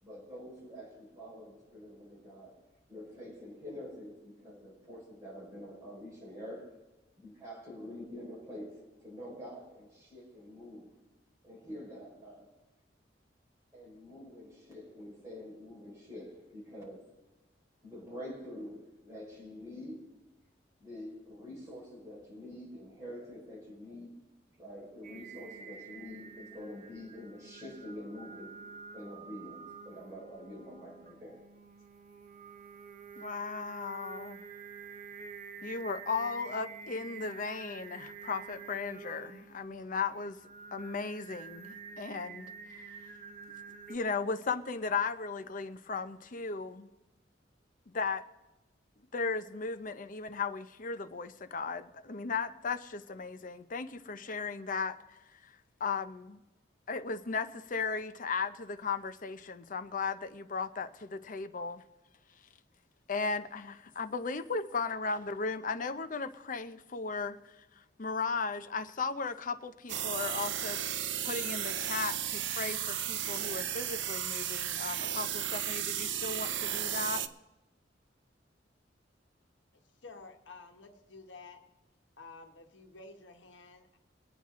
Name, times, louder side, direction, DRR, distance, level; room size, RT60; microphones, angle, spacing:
voice 1, 0.0-6.8 7.2-11.0 11.4-12.6 13.7-17.0 17.8-20.2 20.8-24.2 24.6-31.5, left 1 dB, 20° right, 4.9 m, -47 dB
Singing, 25.0-44.0, right 5 dB, 50° right, 0.9 m, -48 dB
voice 2, 33.2-34.4 35.6-40.4 40.7-43.0 43.9-46.9 47.9-48.2 49.1-55.0 55.4-56.4 56.9-61.8 63.1-67.4 68.0-70.8 71.2-77.3, left 4 dB, 45° left, 0.7 m, -36 dB
sound 1, 69.9-77.3, right 10 dB, 75° right, 0.7 m, -34 dB
voice 3, 80.0-81.6 82.2-84.0, left 3 dB, 80° left, 1.4 m, -51 dB
23.5 x 9.1 x 3.7 m
head